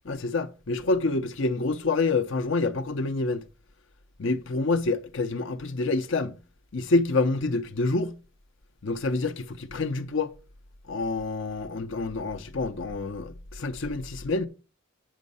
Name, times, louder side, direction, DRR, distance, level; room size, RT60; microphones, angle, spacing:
voice 1, 0.1-3.4 4.2-6.4 6.7-8.1 8.8-10.3 10.9-14.5, left 3 dB, 60° left, 0.7 m, -27 dB
8.8 x 6.2 x 5.4 m
head